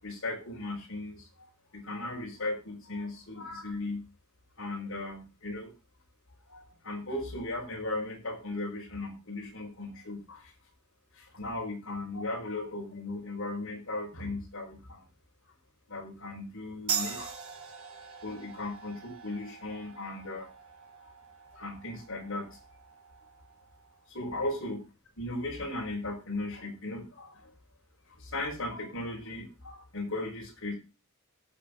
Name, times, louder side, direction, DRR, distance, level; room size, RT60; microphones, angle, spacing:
voice 1, 0.0-4.0 4.6-5.7 6.5-10.5 11.1-15.0 15.9-17.4 18.2-20.5 21.0-21.1 21.5-22.6 24.1-24.9 25.2-27.5 28.1-30.7, left 2 dB, 65° left, 1 dB, 5.0 m, -37 dB
sound 1, 16.9-24.0, right 8 dB, 80° right, 3.3 m, -41 dB
18.0 x 7.0 x 3.8 m, 0.29 s
head